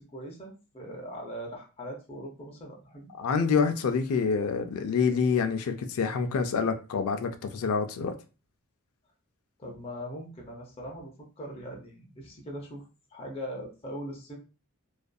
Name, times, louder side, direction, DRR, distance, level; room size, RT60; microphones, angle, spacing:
voice 1, 0.0-3.1 9.6-12.8 13.1-14.4, equal, 25° left, 0.6 m, -40 dB
voice 2, 3.2-8.1, left 5 dB, 75° left, 0.3 m, -27 dB
2.5 x 2.4 x 2.2 m
head